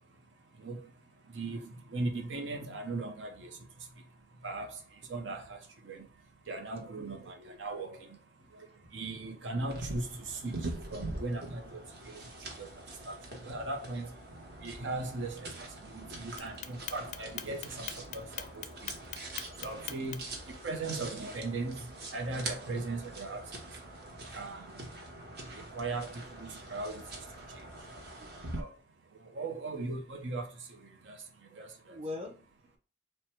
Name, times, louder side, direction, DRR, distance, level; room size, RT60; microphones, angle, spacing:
voice 1, 1.3-3.6 4.4-4.8 5.1-6.0 6.5-8.2 8.9-12.2 12.6-12.7 13.1-13.2 13.4-14.1 14.6-15.5 15.9-18.6 19.6-20.2 20.6-21.8 22.1-23.4 24.3-24.7 25.7-27.0 28.6-28.7 29.3-30.8 31.1-31.2 31.5-31.7, right 3 dB, 80° right, 0.8 m, -38 dB
voice 2, 8.4-8.9 19.9-20.1 28.1-28.3 31.9-32.4, left 2 dB, 35° right, 0.8 m, -44 dB
sound 1, 9.7-28.6, right 2 dB, 60° right, 1.0 m, -44 dB
Clock, 16.4-20.4, left 10 dB, 40° left, 0.4 m, -40 dB
4.4 x 2.2 x 4.4 m
head